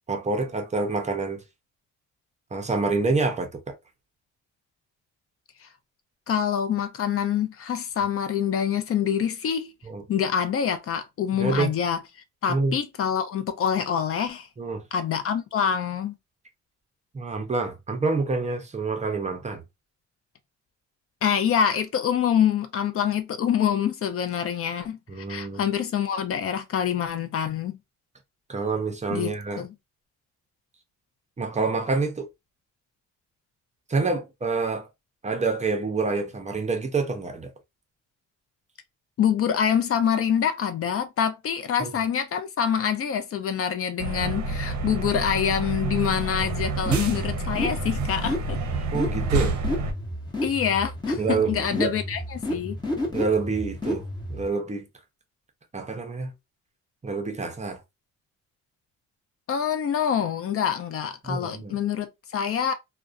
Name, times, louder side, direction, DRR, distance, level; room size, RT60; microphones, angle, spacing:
voice 1, 0.1-1.4 2.5-3.8 9.8-10.0 11.4-11.7 12.5-12.8 14.6-14.8 17.1-19.6 25.1-25.6 28.5-29.6 31.4-32.3 33.9-34.9 35.2-37.5 41.8-41.9 48.9-49.6 51.2-52.0 53.1-54.9 55.7-56.3 57.0-57.8 61.2-61.8, right 4 dB, 25° right, 0.6 m, -27 dB
voice 2, 6.3-9.7 10.1-12.0 12.4-14.5 14.9-16.1 21.2-27.8 29.1-29.3 29.6-29.7 39.2-48.6 50.4-52.8 59.5-62.7, left 8 dB, 50° left, 0.5 m, -26 dB
sound 1, 44.0-49.9, right 3 dB, 65° right, 0.6 m, -28 dB
sound 2, 46.4-54.5, left 1 dB, 15° left, 0.8 m, -31 dB
2.4 x 2.2 x 2.4 m
cardioid pair, 90°, 30 cm